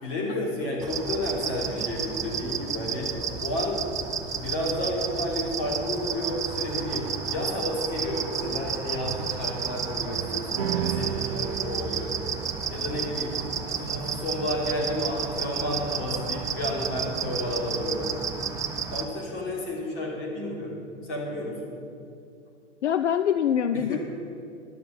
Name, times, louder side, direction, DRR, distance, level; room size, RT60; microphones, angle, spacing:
voice 1, 0.0-3.1 3.4-12.1 12.7-13.4 13.8-18.2 18.9-21.6 23.9-24.0, left 1 dB, 35° left, -3 dB, 3.2 m, -31 dB
sound 1, 0.8-19.1, right 6 dB, 10° right, 0.3 m, -32 dB
sound 2, 10.6-17.3, right 8 dB, 60° right, 0.6 m, -37 dB
voice 2, 22.8-24.0, left 9 dB, 75° left, 10 dB, 0.5 m, -24 dB
12.0 x 6.8 x 7.1 m, 2.5 s
figure-of-eight pair, 100°, 36 cm